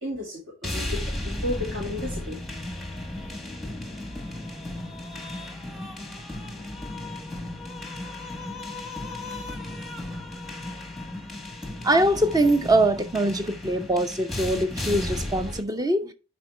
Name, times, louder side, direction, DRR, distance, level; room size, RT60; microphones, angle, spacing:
voice 1, 0.0-2.4, left 1 dB, 55° right, 2.4 m, -33 dB
Tribal-continue, 0.6-15.6, left 1 dB, ahead, 1.1 m, -34 dB
voice 2, 11.8-16.1, right 1 dB, 15° right, 0.6 m, -23 dB
10.5 x 4.4 x 3.3 m
head